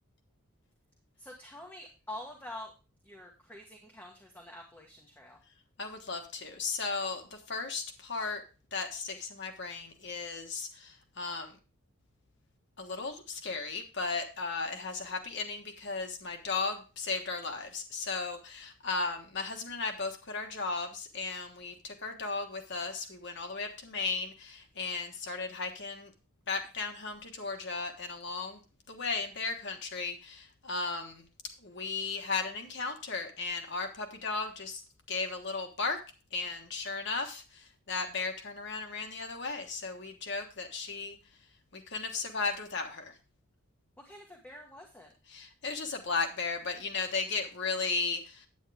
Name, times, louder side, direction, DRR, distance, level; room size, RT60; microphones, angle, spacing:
voice 1, 1.2-2.7 3.0-5.4 44.0-45.1, left 1 dB, 10° left, -1 dB, 1.3 m, -46 dB
voice 2, 5.8-8.4 8.7-11.6 12.8-26.1 26.5-28.6 28.9-31.2 31.6-34.8 35.1-36.0 36.3-41.2 41.7-43.1 45.3-48.5, left 4 dB, 55° left, 4 dB, 1.4 m, -35 dB
9.3 x 9.0 x 3.4 m, 0.32 s
head